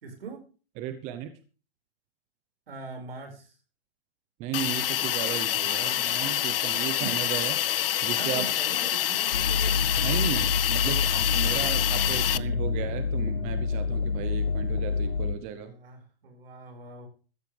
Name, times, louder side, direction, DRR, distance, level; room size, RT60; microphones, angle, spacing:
voice 1, 0.0-0.4 2.7-3.5 7.0-7.1 7.8-9.8 15.3-17.1, right 4 dB, 70° right, 4 dB, 5.4 m, -42 dB
voice 2, 0.8-1.3 4.4-7.6 8.0-8.5 10.0-15.7, right 10 dB, 25° right, 10 dB, 0.8 m, -35 dB
Hiss, 4.5-12.4, left 12 dB, 65° left, 0.6 m, -27 dB
sound 1, 9.3-15.3, left 4 dB, 85° left, 1.5 m, -28 dB
15.0 x 14.0 x 3.4 m, 0.36 s
hypercardioid pair, 145°, 30 cm